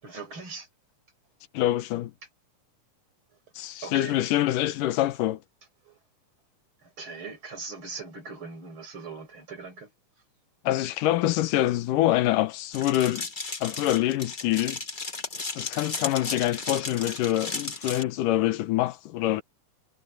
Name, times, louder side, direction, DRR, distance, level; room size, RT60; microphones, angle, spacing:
voice 1, 0.0-0.7 3.8-4.3 5.8-6.0 6.8-9.9 19.2-19.4, right 4 dB, 40° right, 6.2 m, -40 dB
voice 2, 1.5-2.1 3.6-5.4 10.7-13.3 13.6-14.8 15.6-19.4, left 14 dB, 90° left, 2.6 m, -25 dB
sound 1, 12.7-18.0, left 3 dB, 45° left, 0.6 m, -35 dB
omnidirectional pair, 3.7 m